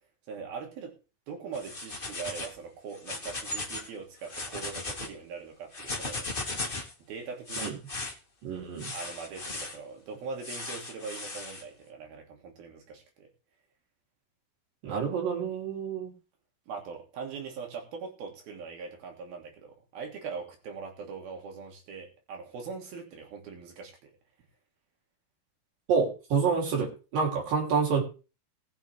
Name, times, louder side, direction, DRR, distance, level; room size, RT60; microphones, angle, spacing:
voice 1, 0.3-0.9 1.3-6.3 7.1-7.7 8.9-13.3 16.7-24.1, right 5 dB, 90° right, 2 dB, 4.5 m, -41 dB
sound 1, 1.5-2.6 2.9-3.9 4.2-5.1 5.7-6.9 7.5-8.1 8.8-9.8 10.4-11.6, left 2 dB, 25° left, 1.1 m, -37 dB
voice 2, 8.4-8.9 14.8-16.1 25.9-28.0, right 5 dB, 70° right, -1 dB, 4.9 m, -28 dB
20.0 x 8.0 x 3.4 m, 0.33 s
omnidirectional pair, 4.1 m